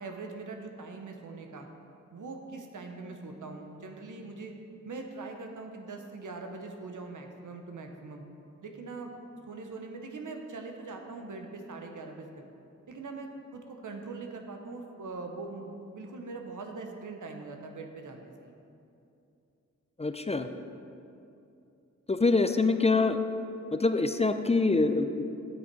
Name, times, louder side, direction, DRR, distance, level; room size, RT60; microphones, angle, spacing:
voice 1, 0.0-1.7 2.1-4.5 4.8-8.2 8.6-9.1 9.5-12.3 12.9-18.5, right 3 dB, 90° right, 3 dB, 0.8 m, -42 dB
voice 2, 20.0-20.5 22.1-23.2 23.7-25.2, left 3 dB, 20° left, 8 dB, 0.4 m, -25 dB
9.5 x 5.9 x 4.6 m, 2.7 s
wide cardioid pair, 70°, 30 cm